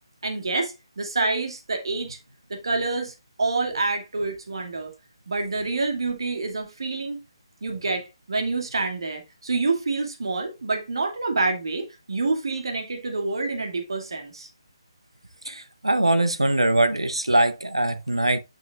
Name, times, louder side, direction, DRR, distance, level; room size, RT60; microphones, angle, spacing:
voice 1, 0.2-2.2 2.5-4.9 5.3-7.2 7.6-14.5, right 3 dB, 65° right, 2.4 m, -27 dB
voice 2, 15.4-18.4, right 1 dB, 85° right, 1.2 m, -22 dB
10.5 x 6.1 x 2.5 m
figure-of-eight pair, 145°, 3 cm